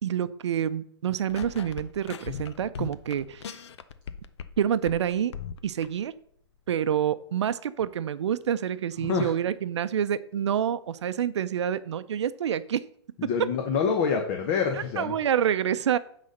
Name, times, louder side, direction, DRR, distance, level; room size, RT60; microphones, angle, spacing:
voice 1, 0.0-3.6 4.6-5.3 5.6-6.1 6.7-12.8 14.7-16.0, right 9 dB, 75° right, 14 dB, 0.6 m, -27 dB
sound 1, 1.3-4.6 4.9-5.9, left 7 dB, 70° left, 0.7 m, -38 dB
voice 2, 9.0-9.3 13.2-15.2, left 6 dB, 35° left, 4 dB, 1.0 m, -26 dB
9.6 x 4.1 x 6.5 m, 0.65 s
hypercardioid pair, 155°, 15 cm